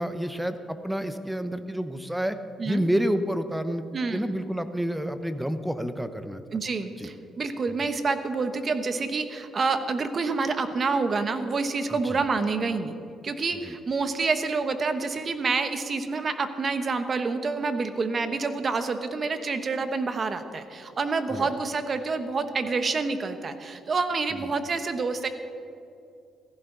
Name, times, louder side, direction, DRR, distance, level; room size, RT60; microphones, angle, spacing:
voice 1, 0.0-2.3 2.6-3.9 4.1-6.4 7.0-7.1 11.9-12.2 13.6-13.7 21.3-21.5 24.4-24.5, equal, 5° right, 10 dB, 0.8 m, -29 dB
voice 2, 3.9-4.3 6.5-12.9 13.2-25.3, right 4 dB, 40° right, 9 dB, 1.1 m, -28 dB
16.0 x 15.0 x 4.0 m, 2.5 s
cardioid pair, 90°, 0 cm